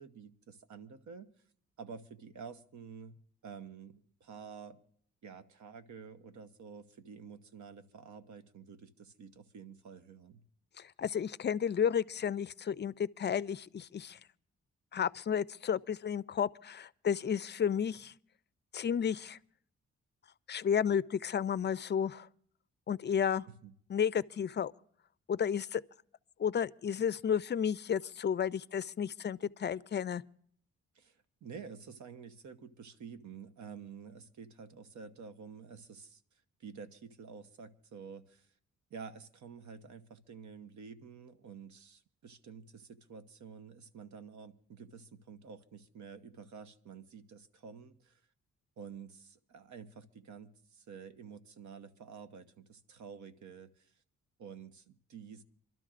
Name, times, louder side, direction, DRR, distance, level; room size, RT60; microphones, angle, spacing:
voice 1, 0.0-1.3 1.8-4.8 5.2-10.4 23.5-23.7 30.9-36.2 36.6-38.5 38.9-48.2 48.8-53.9 54.4-55.4, right 6 dB, 75° right, 1.0 m, -50 dB
voice 2, 10.8-14.2 14.9-18.1 18.7-19.4 20.5-22.3 22.9-23.5 23.9-24.7 25.3-25.8 26.4-30.2, left 8 dB, 35° left, 0.4 m, -32 dB
27.0 x 12.5 x 2.5 m
cardioid pair, 65°, 30 cm